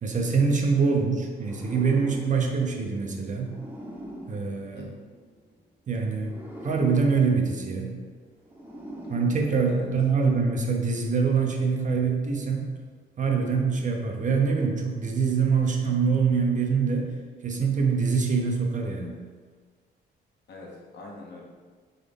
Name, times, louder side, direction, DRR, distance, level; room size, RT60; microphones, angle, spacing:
voice 1, 0.0-3.6 4.3-4.9 5.9-6.3 6.6-7.9 9.1-12.7 13.2-17.1 17.4-19.2, right 5 dB, 40° right, 1 dB, 0.7 m, -24 dB
sound 1, 1.3-5.5 6.2-10.1, equal, 10° right, 0.9 m, -43 dB
voice 2, 20.5-21.4, left 2 dB, 60° left, -2 dB, 1.1 m, -44 dB
3.9 x 3.8 x 3.5 m, 1.5 s
cardioid pair, 90°, 20 cm